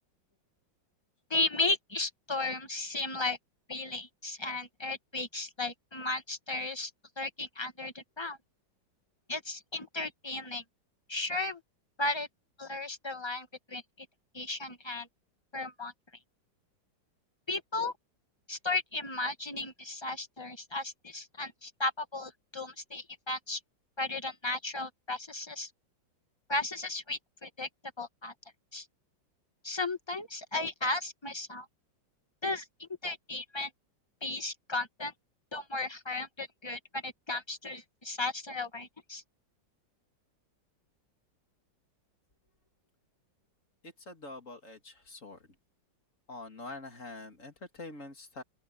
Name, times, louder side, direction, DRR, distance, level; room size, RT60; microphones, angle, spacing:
voice 1, 1.3-3.4 3.7-6.9 7.2-8.4 9.3-10.6 11.1-11.6 12.0-12.3 12.6-14.1 14.3-15.1 15.5-15.9 17.5-17.9 18.5-23.6 24.0-25.7 26.5-27.7 28.0-28.3 28.7-28.9 29.6-31.7 32.4-33.7 34.2-35.1 35.5-39.2, left 2 dB, 15° left, 1.4 m, -35 dB
voice 2, 43.8-45.5 46.3-48.4, left 2 dB, 40° left, 2.9 m, -45 dB
open air
omnidirectional pair, 2.0 m